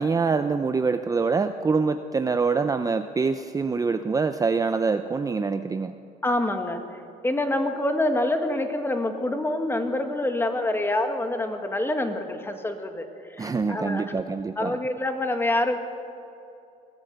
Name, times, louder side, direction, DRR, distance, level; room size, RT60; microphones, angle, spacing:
voice 1, 0.0-5.9 13.4-14.8, right 4 dB, 20° right, 9 dB, 0.6 m, -25 dB
voice 2, 6.2-14.1 14.6-15.8, left 1 dB, 15° left, 6 dB, 1.9 m, -26 dB
22.0 x 14.5 x 8.1 m, 2.7 s
cardioid pair, 110°, 17 cm